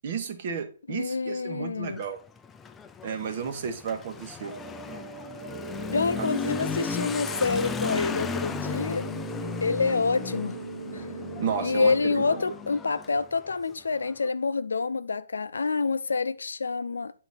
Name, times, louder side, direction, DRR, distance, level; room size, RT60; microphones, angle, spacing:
voice 1, 0.0-2.2 3.0-4.5 6.2-6.3 11.4-12.2, right 6 dB, 50° right, 1.2 m, -32 dB
voice 2, 0.9-2.0 5.9-9.1 9.6-10.6 10.9-11.0 11.6-17.1, left 4 dB, 90° left, 0.4 m, -27 dB
Motorcycle / Accelerating revving vroom, 1.8-14.2, left 6 dB, 10° left, 0.3 m, -36 dB
sound 1, 4.4-12.4, right 4 dB, 75° right, 1.1 m, -39 dB
8.0 x 3.9 x 4.3 m
hypercardioid pair, 145°, 0 cm